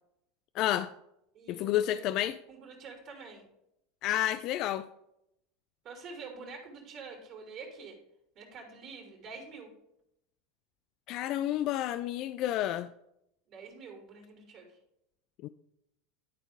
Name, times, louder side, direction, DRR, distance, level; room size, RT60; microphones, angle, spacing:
voice 1, 0.5-0.9 1.5-2.4 4.0-4.9 11.1-12.9 15.4-15.5, left 13 dB, 55° left, 0.3 m, -30 dB
voice 2, 1.3-2.2 2.5-3.5 5.8-8.0 8.3-9.7 13.5-14.7, right 4 dB, 50° right, 3.1 m, -46 dB
12.0 x 4.4 x 3.6 m
hypercardioid pair, 90°, 0 cm